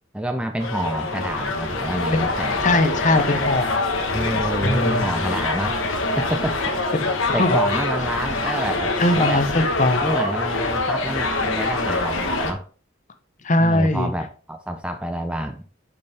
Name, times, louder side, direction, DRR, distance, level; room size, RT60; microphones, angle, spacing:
voice 1, 0.1-2.6 4.1-5.8 6.1-9.5 10.0-12.6 13.6-15.6, right 1 dB, 5° right, 6 dB, 0.4 m, -28 dB
sound 1, 0.6-12.5, left 2 dB, 75° left, 1.2 m, -24 dB
voice 2, 2.6-3.8 4.6-5.0 6.9-7.6 9.0-10.1 13.4-14.1, left 2 dB, 35° left, 8 dB, 0.8 m, -20 dB
6.7 x 5.3 x 3.4 m, 0.39 s
head